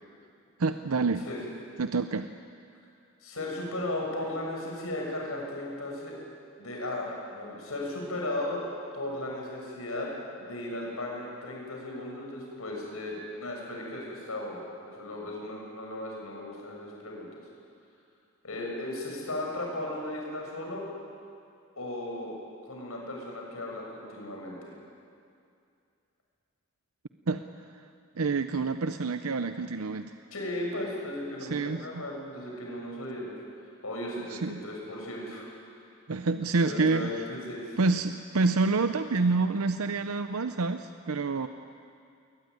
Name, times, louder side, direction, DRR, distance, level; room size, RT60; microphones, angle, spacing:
voice 1, 0.6-1.3 1.8-2.3 27.3-27.4 27.7-27.8 28.2-30.1 31.4-32.0 34.2-34.6 36.1-37.1 37.8-41.5, right 3 dB, 85° right, 9 dB, 0.7 m, -28 dB
voice 2, 3.2-6.2 6.6-8.6 8.9-10.1 10.4-17.3 18.4-20.9 21.8-22.3 22.7-24.7 30.3-33.4 33.8-35.5 36.6-37.8, left 1 dB, 80° left, -1 dB, 6.7 m, -36 dB
22.0 x 19.5 x 9.4 m, 2.4 s
head